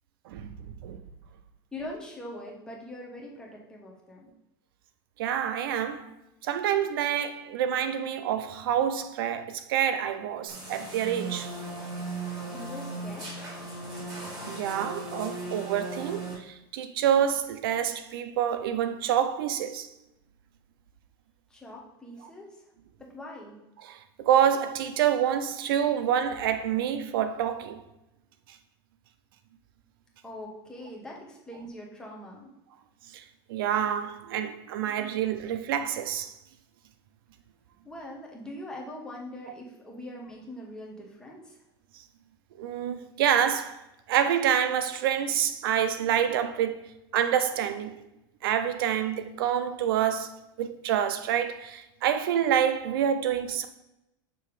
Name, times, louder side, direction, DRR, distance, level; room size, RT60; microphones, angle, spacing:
voice 1, 1.7-4.3 12.5-13.4 21.5-22.6 23.0-23.6 30.2-32.5 37.8-41.6, left 1 dB, 5° left, 1.1 m, -42 dB
voice 2, 5.2-6.1 6.4-11.5 14.2-19.9 23.8-27.8 33.1-33.2 33.5-36.3 42.6-43.8 44.1-46.8 47.1-47.9 48.4-53.7, right 9 dB, 75° right, 0.5 m, -27 dB
sound 1, 10.5-16.3, right 2 dB, 30° right, 2.2 m, -37 dB
7.0 x 3.3 x 4.8 m
supercardioid pair, 160°, 12 cm